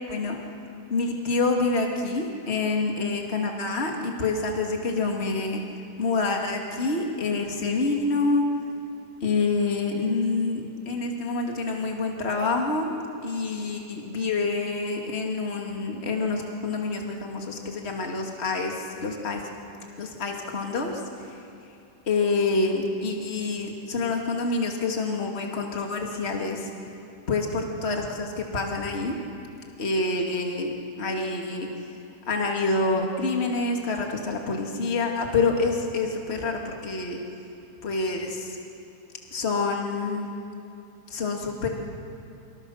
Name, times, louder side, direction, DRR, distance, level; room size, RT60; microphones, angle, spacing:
voice 1, 0.9-5.6 6.0-8.4 9.2-12.9 13.2-19.4 20.0-21.0 22.1-26.7 27.3-29.2 29.8-31.7 32.3-37.2 37.8-38.6 39.3-40.3 41.1-41.7, left 3 dB, 25° left, 1 dB, 2.3 m, -27 dB
28.0 x 27.0 x 6.5 m, 2.6 s
omnidirectional pair, 3.3 m